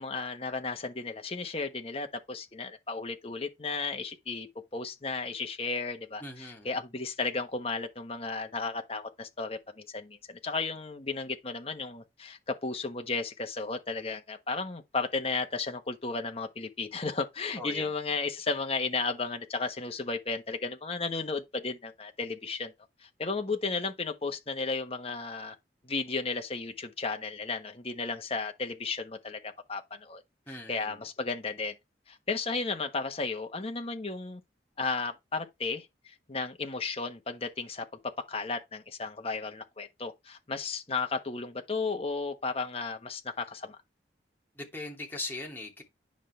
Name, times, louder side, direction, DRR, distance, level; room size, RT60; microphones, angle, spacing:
voice 1, 0.0-4.5 4.7-22.7 23.0-25.5 25.8-30.2 30.5-31.7 32.1-34.4 34.8-37.8 38.3-43.8, left 4 dB, 35° left, 1.3 m, -34 dB
voice 2, 6.2-6.7 17.6-17.9 30.5-31.0 44.6-45.8, left 2 dB, 10° left, 2.6 m, -40 dB
10.0 x 5.7 x 3.4 m
head